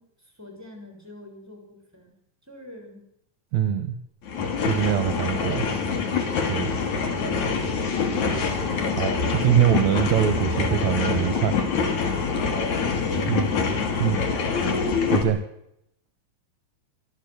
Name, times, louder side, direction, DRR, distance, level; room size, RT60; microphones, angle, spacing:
voice 1, 0.0-2.1 2.5-3.1 12.6-13.7 14.3-15.0, equal, 5° right, 4 dB, 6.1 m, -44 dB
voice 2, 3.5-4.0 4.6-5.7 6.5-6.7 8.9-11.6 13.3-13.5 14.0-14.2 15.1-15.4, right 10 dB, 65° right, 9 dB, 2.3 m, -23 dB
sound 1, 4.2-15.2, left 5 dB, 60° left, 4.0 m, -25 dB
sound 2, 5.1-14.7, equal, 80° left, 8.3 m, -42 dB
24.0 x 14.5 x 8.1 m, 0.78 s
omnidirectional pair, 3.8 m